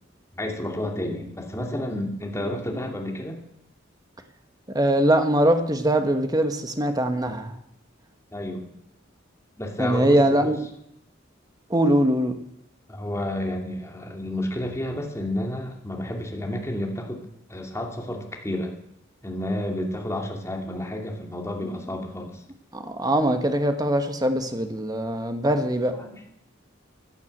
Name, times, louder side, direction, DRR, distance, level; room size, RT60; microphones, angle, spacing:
voice 1, 0.3-3.4 8.3-8.7 9.6-10.5 12.9-17.2 17.5-18.7 19.2-22.4 25.9-26.4, left 1 dB, 15° left, 1 dB, 2.6 m, -31 dB
voice 2, 4.7-7.5 9.8-10.6 11.7-12.3 22.7-25.9, right 1 dB, 20° right, 7 dB, 1.5 m, -22 dB
15.5 x 9.7 x 8.0 m, 0.77 s
head